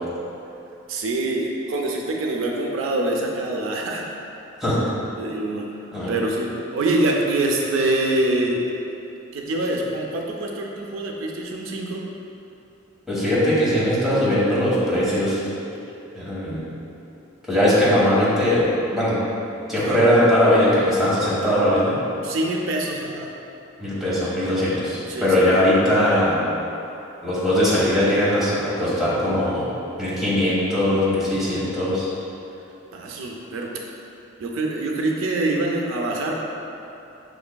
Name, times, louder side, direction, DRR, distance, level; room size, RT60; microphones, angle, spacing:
voice 1, 0.9-4.0 5.2-5.7 6.1-8.6 9.3-12.1 19.8-20.0 22.2-23.3 25.1-25.5 32.9-33.7 34.4-36.4, right 2 dB, 80° right, 0 dB, 0.4 m, -25 dB
voice 2, 13.1-15.4 16.1-16.6 17.5-18.6 18.9-19.2 19.7-22.0 23.8-26.4 27.2-29.6 30.0-32.1, left 1 dB, ahead, -11 dB, 1.1 m, -20 dB
5.9 x 3.1 x 2.2 m, 2.8 s
head